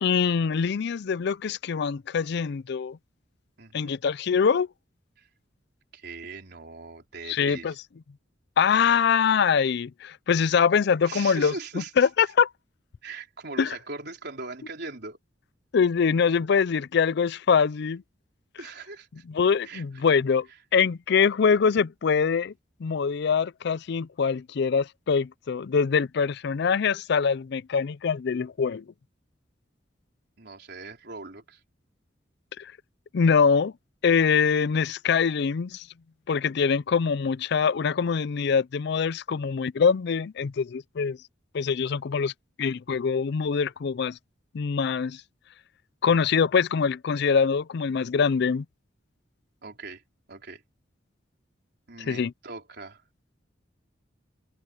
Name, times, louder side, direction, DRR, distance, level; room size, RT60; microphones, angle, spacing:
voice 1, 0.0-3.0 3.7-4.7 7.3-7.7 8.6-11.5 12.0-12.5 13.6-13.7 15.7-18.0 19.3-20.5 20.7-22.5 22.8-28.8 32.6-32.7 33.1-33.7 34.0-35.9 36.3-41.2 41.5-42.3 42.6-44.2 44.5-45.2 46.0-48.6 52.1-52.3, left 6 dB, 60° left, 0.4 m, -23 dB
voice 2, 3.6-3.9 5.2-5.3 5.9-7.7 11.0-12.1 13.0-15.2 18.6-19.2 19.6-19.8 30.4-31.6 49.6-50.0 50.3-50.6 51.9-53.0, right 3 dB, 60° right, 4.4 m, -40 dB
open air
head